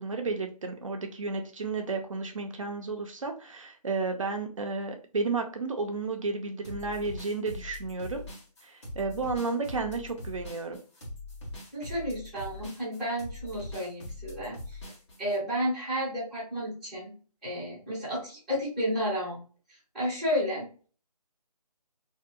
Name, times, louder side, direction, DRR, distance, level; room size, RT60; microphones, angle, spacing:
voice 1, 0.0-8.2 8.6-10.8, right 3 dB, 55° right, 4 dB, 0.5 m, -32 dB
sound 1, 6.6-15.4, left 2 dB, 45° left, 1.1 m, -42 dB
voice 2, 11.7-14.8 15.2-17.1 17.4-19.4 19.9-20.7, equal, ahead, -16 dB, 0.5 m, -32 dB
2.7 x 2.3 x 2.4 m, 0.38 s
figure-of-eight pair, 165°, 21 cm